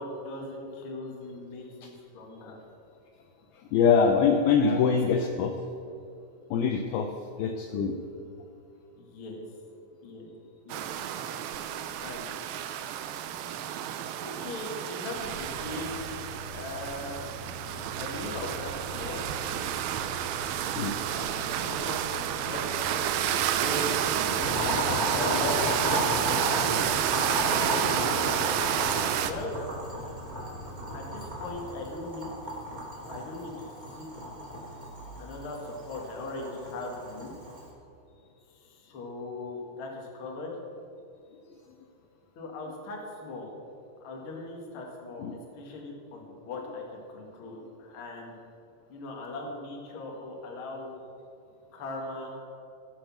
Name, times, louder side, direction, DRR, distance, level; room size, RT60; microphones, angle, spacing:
voice 1, 0.0-2.6 4.6-5.3 9.0-9.4 10.0-10.3 10.6-10.9 11.2-12.3 14.2-17.3 18.0-19.2 21.0-25.6 27.3-28.6 29.2-29.5 30.9-32.3 33.1-33.7 34.0-34.1 35.2-37.3 38.5-40.6 42.4-43.5 44.0-45.3 45.5-48.3 48.9-51.0 51.7-52.3, left 2 dB, 50° left, -1 dB, 1.7 m, -39 dB
voice 2, 3.5-5.6 6.5-7.1 7.4-8.0 20.8-21.0 27.4-27.5 45.2-45.4, left 6 dB, 80° left, 4 dB, 2.3 m, -24 dB
sound 1, 10.7-29.3, right 10 dB, 85° right, 2.1 m, -30 dB
sound 2, 15.1-31.7, right 1 dB, 65° right, 1.8 m, -44 dB
Boiling, 24.4-37.6, equal, 15° right, 2.2 m, -33 dB
16.5 x 6.4 x 6.1 m, 2.6 s
omnidirectional pair, 4.9 m